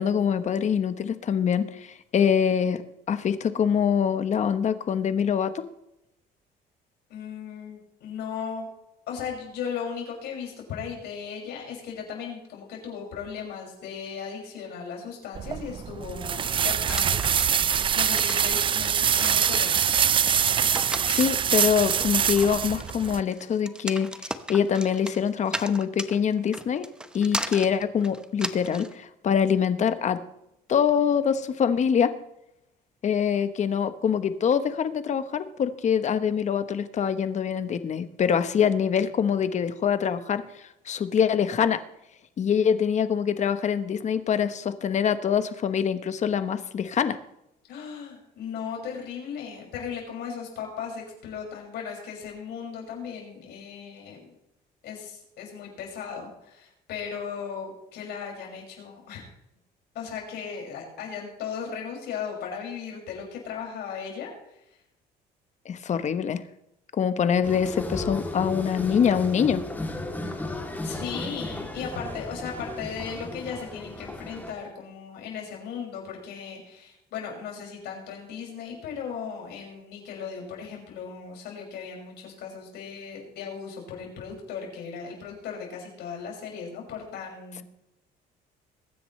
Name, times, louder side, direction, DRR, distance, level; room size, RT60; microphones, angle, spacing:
voice 1, 0.0-2.8 3.1-5.6 21.0-24.1 24.5-26.9 27.1-30.2 30.7-32.1 33.0-40.4 40.9-41.8 42.4-47.2 65.6-66.4 67.0-69.6, left 7 dB, 45° left, 11 dB, 1.1 m, -24 dB
voice 2, 7.1-8.7 9.1-17.5 17.9-19.7 47.7-54.2 54.8-59.3 59.9-64.5 70.8-87.6, left 6 dB, 75° left, -1 dB, 6.1 m, -37 dB
sound 1, 15.4-23.2, right 8 dB, 30° right, 0.3 m, -24 dB
sound 2, 16.9-28.9, right 1 dB, 5° right, 0.9 m, -36 dB
sound 3, 67.4-74.5, left 2 dB, 10° left, 2.8 m, -34 dB
22.5 x 10.0 x 3.2 m, 0.84 s
cardioid pair, 110°, 17 cm